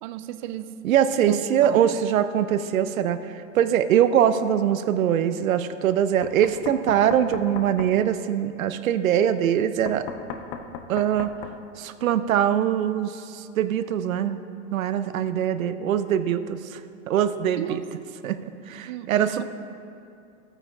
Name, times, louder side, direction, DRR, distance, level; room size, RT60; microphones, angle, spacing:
voice 1, 0.0-0.7 1.3-1.8 17.6-17.8 18.7-19.4, right 12 dB, 40° right, 12 dB, 0.4 m, -34 dB
voice 2, 0.8-10.0 10.9-11.3 11.8-14.4 14.7-16.8 17.1-17.8 18.2-19.4, right 9 dB, 85° right, 12 dB, 0.6 m, -23 dB
Knock, 6.2-7.9 9.9-11.6, left 6 dB, 40° left, 0.7 m, -36 dB
16.0 x 8.9 x 2.4 m, 2.6 s
hypercardioid pair, 130°, 40 cm